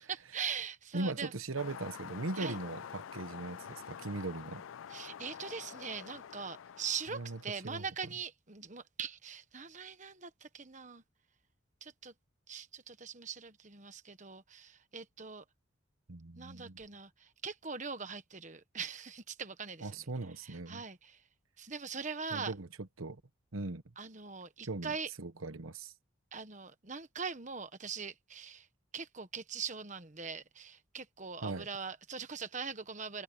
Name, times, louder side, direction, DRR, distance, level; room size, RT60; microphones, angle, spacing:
voice 1, 0.1-1.3 2.4-2.6 4.9-11.0 11.8-12.1 12.5-15.4 16.3-19.9 20.4-21.2 21.6-22.5 24.0-25.1 26.3-28.7 28.9-33.2, right 6 dB, 35° right, 1.3 m, -42 dB
voice 2, 0.9-4.6 7.1-7.4 7.6-7.8 16.1-16.8 19.8-20.8 22.3-23.2 23.5-23.8 24.6-25.9 31.4-31.7, right 2 dB, 85° right, 1.2 m, -39 dB
sound 1, 1.6-7.7, left 8 dB, 75° left, 0.4 m, -47 dB
head